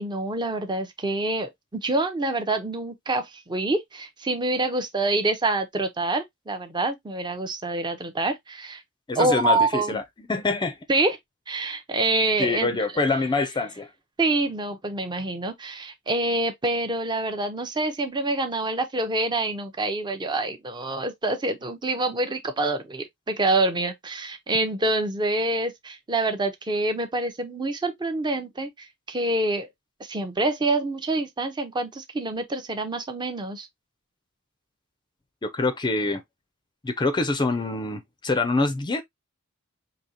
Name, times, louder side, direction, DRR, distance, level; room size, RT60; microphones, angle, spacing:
voice 1, 0.0-8.8 9.2-10.0 10.9-11.2 11.5-12.8 14.2-29.7 30.0-33.7, right 2 dB, 20° right, 0.6 m, -26 dB
voice 2, 9.1-10.0 10.3-10.8 12.4-13.9 35.4-36.2 36.8-39.0, left 3 dB, 20° left, 0.5 m, -25 dB
5.1 x 2.8 x 2.8 m
head